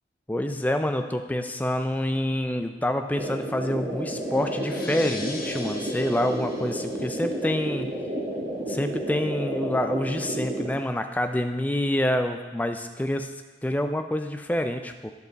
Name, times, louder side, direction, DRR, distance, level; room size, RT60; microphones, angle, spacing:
voice 1, 0.3-7.9 8.7-13.3 13.6-15.1, left 1 dB, 10° left, 7 dB, 0.4 m, -27 dB
sound 1, 3.2-7.9, left 2 dB, 55° left, 1.1 m, -42 dB
sound 2, 3.2-10.7, right 1 dB, 45° right, 1.8 m, -31 dB
11.5 x 5.5 x 4.0 m, 1.3 s
head